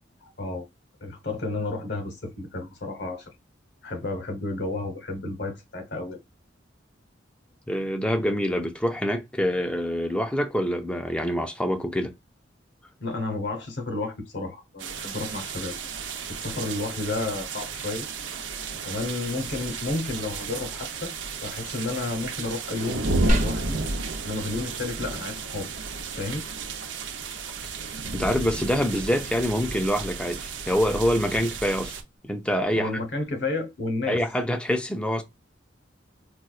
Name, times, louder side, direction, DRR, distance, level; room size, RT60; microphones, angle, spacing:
voice 1, 0.2-0.7 1.0-3.3 3.8-6.2 13.0-15.7 16.3-18.1 18.7-21.1 21.4-23.8 24.2-25.7 26.2-26.5 32.7-34.2, left 2 dB, 65° left, 0.9 m, -31 dB
voice 2, 7.7-12.1 28.1-31.9 32.2-33.0 34.1-35.2, equal, 5° left, 0.5 m, -25 dB
sound 1, 14.8-32.0, right 3 dB, 85° right, 0.7 m, -33 dB
sound 2, 23.3-33.3, equal, 40° right, 0.9 m, -37 dB
4.3 x 2.3 x 2.4 m
head